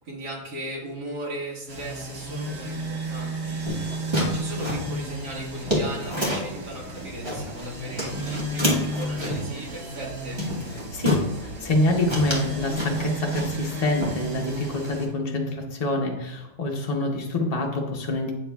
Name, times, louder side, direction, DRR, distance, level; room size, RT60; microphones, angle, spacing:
voice 1, 0.0-10.4, right 1 dB, 70° right, -4 dB, 2.2 m, -37 dB
sound 1, 1.7-15.1, right 1 dB, 50° right, 1.4 m, -33 dB
sound 2, 3.6-6.6 7.0-7.7 8.0-9.5 10.0-10.1 10.4-11.3 11.7-11.8 12.1-13.7 14.0-14.6, equal, 20° right, 1.2 m, -28 dB
voice 2, 10.9-11.2 11.6-18.3, left 2 dB, 55° left, 0 dB, 0.4 m, -26 dB
8.6 x 6.7 x 2.3 m, 0.92 s
omnidirectional pair, 1.8 m